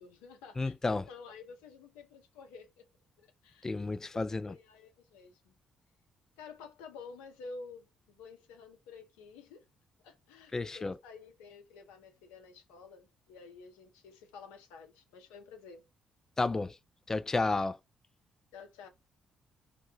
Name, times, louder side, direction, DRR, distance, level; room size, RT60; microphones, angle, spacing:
voice 1, 0.0-2.9 3.2-3.7 4.0-5.5 6.4-9.7 10.0-15.9 18.5-18.9, left 4 dB, 75° left, 0.6 m, -51 dB
voice 2, 0.6-1.0 3.6-4.6 10.5-11.0 16.4-16.7 17.1-17.8, left 3 dB, 25° left, 0.3 m, -31 dB
2.1 x 2.1 x 3.0 m
figure-of-eight pair, 45°, 2 cm